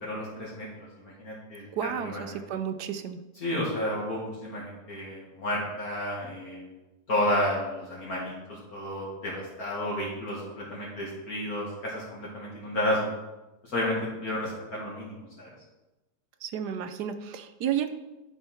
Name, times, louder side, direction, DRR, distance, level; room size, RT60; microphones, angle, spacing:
voice 1, 0.0-2.4 3.4-6.7 7.1-13.2 13.7-15.5, left 1 dB, 60° left, -5 dB, 2.3 m, -32 dB
voice 2, 1.7-3.2 16.4-18.0, right 9 dB, 75° right, 10 dB, 1.3 m, -32 dB
11.0 x 4.9 x 5.7 m, 1.1 s
omnidirectional pair, 1.8 m